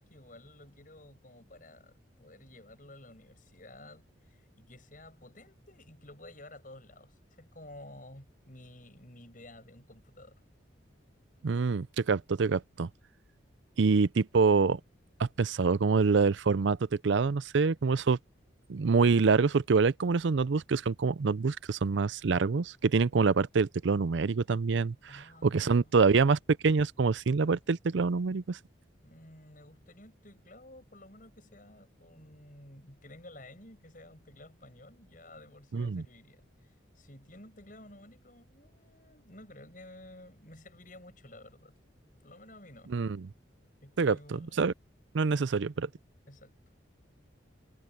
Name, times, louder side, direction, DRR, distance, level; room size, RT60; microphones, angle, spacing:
voice 1, 0.0-10.4 25.1-26.1 29.0-41.8 42.2-43.0 43.8-44.7 46.3-46.6, left 1 dB, 45° left, 7.5 m, -53 dB
voice 2, 11.4-12.9 13.8-14.8 15.2-16.8 17.0-18.2 18.7-28.6 35.7-36.0 42.9-43.2 44.0-44.7 45.1-45.9, right 4 dB, 70° right, 0.5 m, -26 dB
head